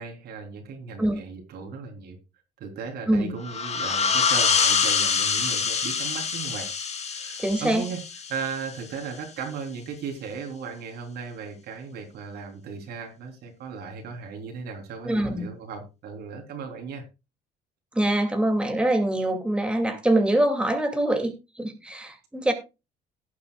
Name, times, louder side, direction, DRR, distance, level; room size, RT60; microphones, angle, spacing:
voice 1, 0.0-2.2 2.6-6.7 7.0-17.0, right 5 dB, 70° right, 3.6 m, -36 dB
sound 1, 3.4-8.8, left 6 dB, 40° left, 2.0 m, -25 dB
voice 2, 7.4-7.8 15.0-15.5 17.9-22.5, right 1 dB, 5° right, 2.5 m, -24 dB
17.5 x 8.5 x 2.4 m
cardioid pair, 110°, 17 cm